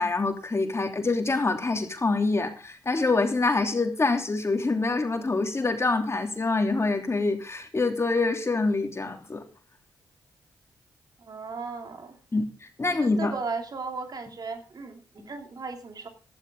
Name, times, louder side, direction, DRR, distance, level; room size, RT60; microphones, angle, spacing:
voice 1, 0.0-9.4 12.3-13.3 15.2-15.3, left 3 dB, 35° left, 4 dB, 3.1 m, -26 dB
voice 2, 11.2-12.2 12.9-16.1, right 4 dB, 55° right, 5 dB, 2.7 m, -36 dB
15.5 x 12.5 x 3.7 m, 0.36 s
supercardioid pair, 40°, 8 cm